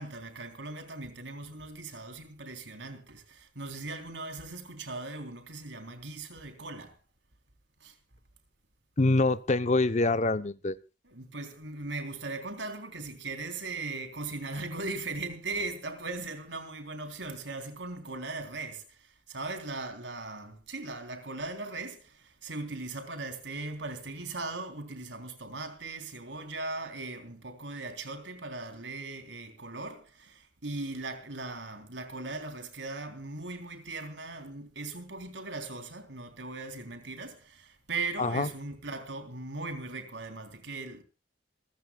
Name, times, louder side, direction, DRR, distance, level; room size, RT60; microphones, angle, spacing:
voice 1, 0.0-7.0 7.8-8.0 11.0-41.0, right 3 dB, 80° right, 3.5 m, -39 dB
voice 2, 9.0-10.8 38.2-38.5, left 2 dB, 40° left, 0.7 m, -25 dB
27.0 x 14.5 x 2.3 m
head